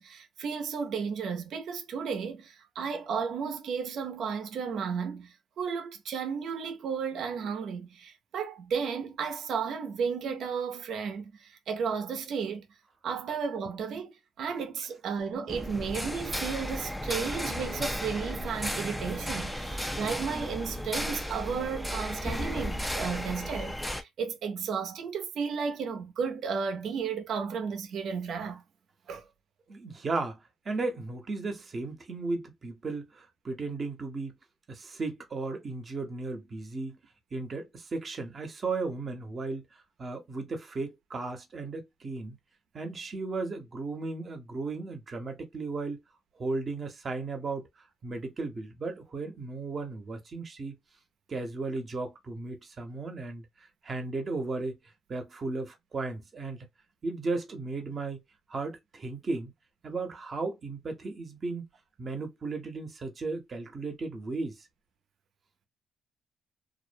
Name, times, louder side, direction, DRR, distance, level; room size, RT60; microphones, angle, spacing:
voice 1, 0.0-12.7 13.0-14.1 14.4-28.6 29.1-29.3, right 6 dB, 70° right, 0.7 m, -33 dB
sound 1, 15.5-24.0, equal, 5° left, 0.4 m, -34 dB
voice 2, 29.7-30.4 30.6-34.3 34.7-37.0 37.3-39.6 40.0-42.4 42.7-46.0 46.4-47.7 48.0-50.8 51.3-53.4 53.8-54.8 55.1-56.6 57.0-58.2 58.5-59.5 59.8-61.7 62.0-64.6, right 3 dB, 40° right, 0.8 m, -35 dB
2.5 x 2.1 x 2.5 m
cardioid pair, 90°, 0 cm